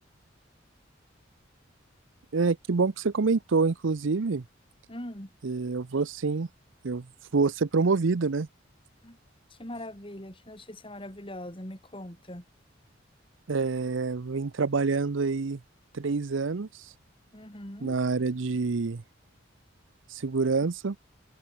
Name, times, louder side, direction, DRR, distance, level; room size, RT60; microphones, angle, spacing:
voice 1, 2.3-4.4 5.4-6.5 6.8-7.1 7.3-8.5 13.5-15.6 15.9-16.7 17.8-19.0 20.1-21.0, right 4 dB, 85° right, 0.7 m, -26 dB
voice 2, 4.9-5.3 9.0-9.2 9.5-12.4 17.3-18.0, left 1 dB, 25° left, 4.6 m, -41 dB
head